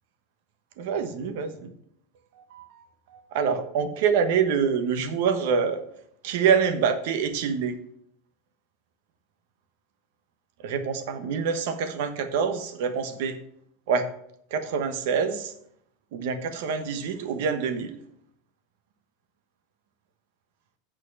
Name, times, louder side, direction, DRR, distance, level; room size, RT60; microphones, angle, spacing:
voice 1, 0.8-1.7 2.4-2.8 3.1-5.8 6.2-7.7 10.6-13.4 13.9-14.1 14.5-15.5 16.1-18.0, right 6 dB, 55° right, 9 dB, 1.1 m, -26 dB
8.7 x 4.6 x 6.9 m, 0.70 s
supercardioid pair, 175°, 0 cm